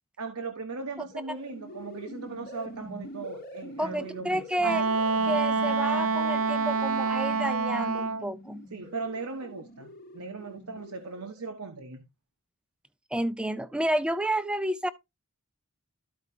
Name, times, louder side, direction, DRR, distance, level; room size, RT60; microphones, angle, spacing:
voice 1, 0.2-4.4 8.7-12.1, right 4 dB, 80° right, 1.1 m, -38 dB
sound 1, 0.9-11.5, equal, 40° left, 1.0 m, -46 dB
voice 2, 3.8-4.8 5.2-8.7 13.1-14.9, right 1 dB, 5° right, 0.5 m, -30 dB
Wind instrument woodwind instrument, 4.6-8.3, right 4 dB, 65° right, 0.7 m, -26 dB
13.5 x 4.8 x 2.8 m
head